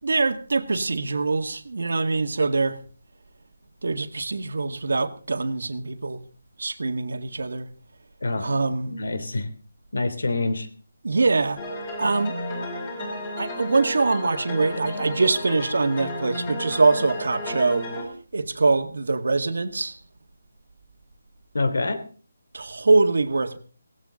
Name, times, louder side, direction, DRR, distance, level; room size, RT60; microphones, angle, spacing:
voice 1, 0.0-2.8 3.8-6.2 6.6-7.7 8.4-9.0 11.0-11.7 12.0-12.4 13.4-17.9 18.3-20.0 22.5-23.6, right 3 dB, 60° right, 1.9 m, -23 dB
voice 2, 8.9-9.5 9.9-10.7 21.5-22.0, left 2 dB, 70° left, 3.2 m, -26 dB
sound 1, 11.6-18.0, left 1 dB, 15° left, 3.6 m, -33 dB
18.5 x 15.0 x 3.9 m
hypercardioid pair, 180°, 0 cm